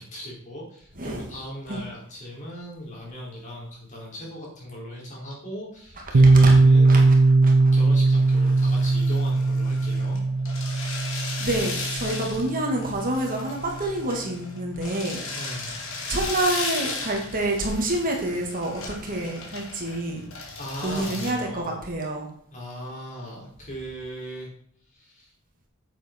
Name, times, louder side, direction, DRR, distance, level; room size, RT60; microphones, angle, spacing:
voice 1, 0.0-7.1 7.7-10.2 15.3-15.8 20.6-21.8 22.5-24.5 24.9-25.3, equal, 35° left, -3 dB, 4.6 m, -38 dB
Piano, 6.1-13.6, right 3 dB, 60° right, 0.7 m, -19 dB
sound 1, 7.9-21.3, left 3 dB, 65° left, 2.7 m, -36 dB
voice 2, 11.4-15.2 16.1-20.2 20.8-22.3, right 1 dB, 40° right, 1 dB, 2.2 m, -27 dB
9.8 x 7.9 x 4.6 m, 0.65 s
head